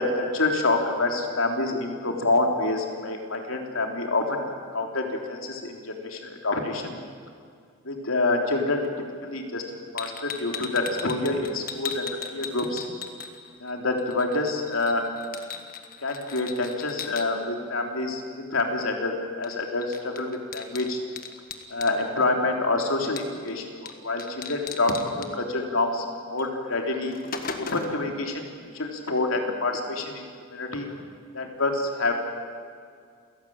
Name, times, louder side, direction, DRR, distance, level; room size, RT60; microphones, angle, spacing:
voice 1, 0.0-7.0 7.8-8.9 9.2-12.9 13.6-15.1 16.0-21.0 21.7-27.2 27.6-30.9 31.3-32.2, left 2 dB, 80° left, 3 dB, 3.6 m, -27 dB
sound 1, 10.0-13.7 14.0-17.3 19.4-19.6 19.8-22.0 23.2-23.5 23.9-24.0 24.2-25.3 26.4-26.5 26.9-28.0, left 6 dB, 40° left, 1.7 m, -37 dB
28.5 x 17.5 x 8.9 m, 2.2 s
head